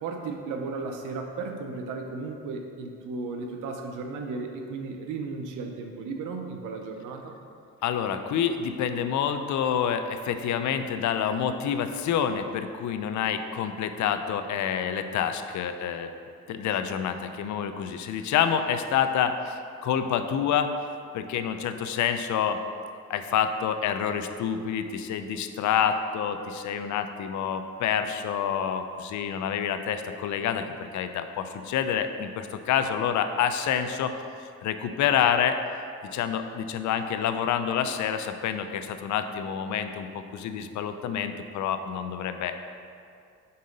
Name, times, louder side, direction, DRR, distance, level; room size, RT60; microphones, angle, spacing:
voice 1, 0.0-7.4, right 4 dB, 85° right, 3 dB, 0.7 m, -35 dB
voice 2, 7.8-16.1 16.5-20.7 21.1-22.6 23.1-30.6 30.9-35.6 36.0-42.6, left 8 dB, 70° left, 8 dB, 0.5 m, -28 dB
5.5 x 3.8 x 5.2 m, 2.4 s
cardioid pair, 90°, 30 cm